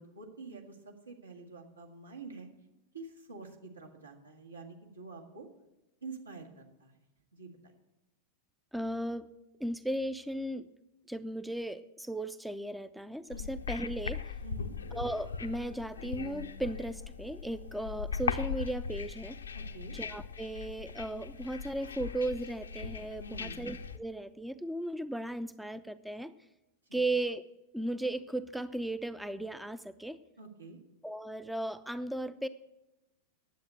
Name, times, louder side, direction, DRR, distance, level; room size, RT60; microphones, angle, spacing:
voice 1, 0.0-2.5 2.9-5.5 6.0-6.9 7.3-7.5 13.3-13.4 14.4-14.7 19.5-19.9 23.2-23.6 26.9-27.0 30.4-30.8, right 4 dB, 80° right, 0 dB, 1.8 m, -47 dB
voice 2, 8.7-9.3 9.6-10.7 11.1-14.2 14.9-19.4 19.9-26.3 26.9-27.4 27.7-30.2 31.0-32.5, right 1 dB, 5° right, 14 dB, 0.4 m, -36 dB
sound 1, 13.3-24.0, left 6 dB, 75° left, 0.6 m, -39 dB
10.5 x 8.0 x 7.9 m, 0.99 s
figure-of-eight pair, 90°, 0 cm